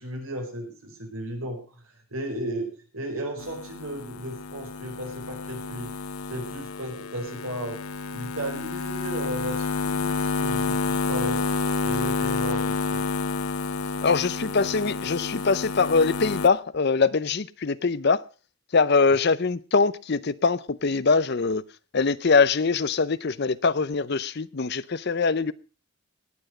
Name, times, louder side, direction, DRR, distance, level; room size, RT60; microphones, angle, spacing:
voice 1, 0.0-5.9 6.3-7.8 8.1-11.4 11.8-13.0 19.1-19.2, right 1 dB, 75° right, 4.6 m, -35 dB
sound 1, 3.4-16.5, left 4 dB, 85° left, 0.7 m, -29 dB
voice 2, 14.0-18.2 18.7-21.6 21.9-25.5, left 4 dB, 50° left, 0.6 m, -23 dB
19.0 x 8.0 x 5.0 m
head